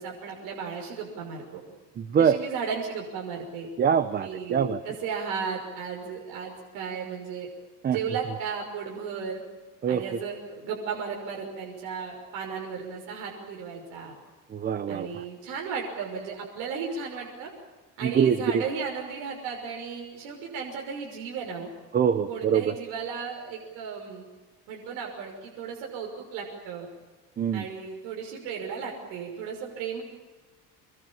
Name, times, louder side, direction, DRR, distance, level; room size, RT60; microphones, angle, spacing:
voice 1, 0.0-1.6 2.2-3.7 4.2-7.5 7.9-9.4 9.9-14.2 14.9-17.5 18.0-21.7 22.3-24.3 24.7-26.9 27.5-30.0, right 6 dB, 80° right, 0 dB, 6.1 m, -35 dB
voice 2, 2.0-2.4 3.8-4.8 7.8-8.0 9.8-10.0 14.5-15.1 18.0-18.6 21.9-22.7 27.4-27.6, right 7 dB, 30° right, 12 dB, 1.0 m, -24 dB
28.0 x 22.5 x 7.4 m, 1.3 s
cardioid pair, 150°, 33 cm